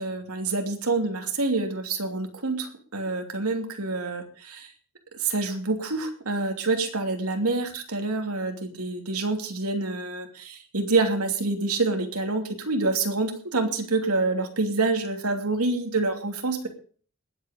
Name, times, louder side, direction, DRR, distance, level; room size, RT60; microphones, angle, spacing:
voice 1, 0.0-4.7 5.1-16.7, right 3 dB, 90° right, 4 dB, 2.9 m, -27 dB
20.0 x 8.2 x 5.2 m, 0.43 s
head